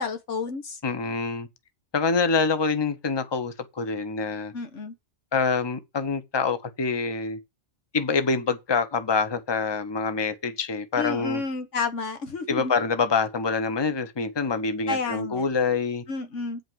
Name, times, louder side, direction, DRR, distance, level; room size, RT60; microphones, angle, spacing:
voice 1, 0.0-0.8 4.5-4.9 11.0-12.7 14.9-15.5 16.1-16.6, left 4 dB, 85° left, 1.7 m, -30 dB
voice 2, 0.8-1.5 1.9-4.5 5.3-7.4 7.9-11.4 12.5-16.0, left 4 dB, 25° left, 0.9 m, -26 dB
8.6 x 5.3 x 7.7 m
omnidirectional pair, 1.2 m